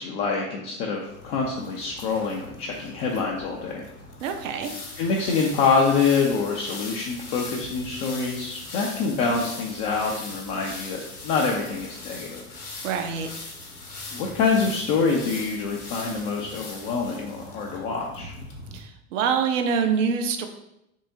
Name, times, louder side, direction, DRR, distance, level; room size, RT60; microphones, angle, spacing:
voice 1, 0.0-3.8 5.0-12.4 14.1-18.3, left 4 dB, 30° left, -1 dB, 0.3 m, -26 dB
sound 1, 1.0-18.8, left 2 dB, 85° left, 0.8 m, -40 dB
voice 2, 4.2-4.7 12.8-13.3 18.7-20.5, right 6 dB, 60° right, 6 dB, 0.6 m, -25 dB
3.6 x 3.4 x 2.7 m, 0.83 s
figure-of-eight pair, 75°, 44 cm